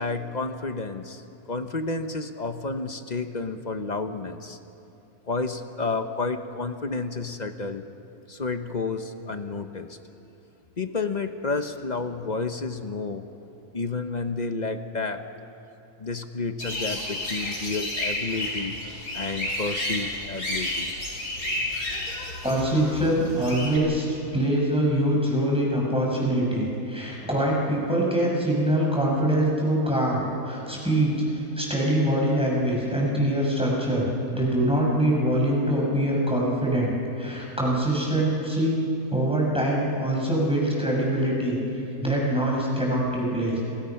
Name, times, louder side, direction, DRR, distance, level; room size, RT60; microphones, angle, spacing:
voice 1, 0.0-4.6 5.3-7.9 8.3-10.0 10.8-13.2 13.7-15.3 16.0-18.8 19.1-20.9, left 3 dB, 35° left, 8 dB, 0.9 m, -31 dB
sound 1, 16.6-23.8, left 1 dB, 85° left, 4.8 m, -31 dB
voice 2, 22.4-38.8 39.1-41.6 42.0-43.6, right 1 dB, 5° right, -3 dB, 5.6 m, -24 dB
29.0 x 21.5 x 5.8 m, 2.9 s
omnidirectional pair, 1.7 m